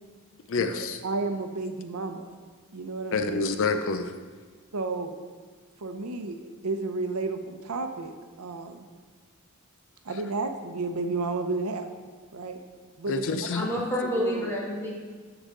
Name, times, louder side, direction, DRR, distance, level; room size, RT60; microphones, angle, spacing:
voice 1, 0.5-1.0 3.1-4.1 13.1-13.7, left 4 dB, 60° left, 8 dB, 0.5 m, -27 dB
voice 2, 1.0-2.4 2.7-3.4 4.7-5.1 5.8-8.1 8.4-8.9 10.0-11.9 12.3-12.6 13.0-13.3 14.0-14.5, right 3 dB, 80° right, 6 dB, 0.7 m, -32 dB
voice 3, 13.5-14.9, equal, 10° left, -4 dB, 1.7 m, -29 dB
13.0 x 4.9 x 3.8 m, 1.5 s
head